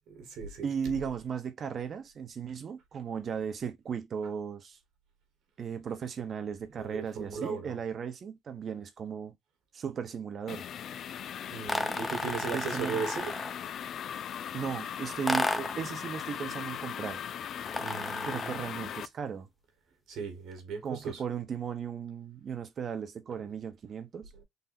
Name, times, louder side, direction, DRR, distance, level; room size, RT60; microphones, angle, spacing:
voice 1, 0.1-1.0 6.7-7.8 11.5-13.4 17.7-18.6 20.1-21.2 23.3-23.5 24.3-24.4, right 5 dB, 75° right, 1.9 m, -38 dB
voice 2, 0.6-4.8 5.6-9.4 9.7-10.7 12.5-13.0 14.5-17.2 18.2-19.5 20.8-24.3, right 7 dB, 55° right, 1.0 m, -36 dB
sound 1, 10.5-19.1, left 9 dB, 65° left, 0.4 m, -39 dB
sound 2, 11.7-13.7 15.3-15.9 17.7-18.7, left 1 dB, 10° left, 0.8 m, -33 dB
4.1 x 2.8 x 4.2 m
supercardioid pair, 75°, 0 cm